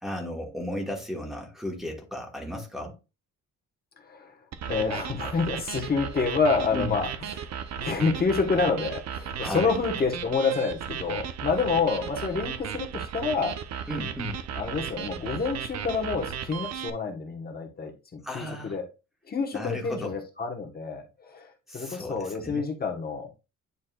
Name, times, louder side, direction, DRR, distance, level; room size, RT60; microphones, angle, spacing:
voice 1, 0.0-3.0 6.7-6.9 9.4-9.7 13.9-14.4 18.2-18.8 19.5-20.1 21.7-22.7, left 1 dB, ahead, 1.3 m, -34 dB
sound 1, 4.5-16.9, right 8 dB, 60° right, 0.6 m, -35 dB
voice 2, 4.7-7.1 7.8-13.6 14.6-18.8 19.3-23.3, left 4 dB, 30° left, 1.2 m, -28 dB
9.5 x 4.2 x 2.4 m
cardioid pair, 160°, 30 cm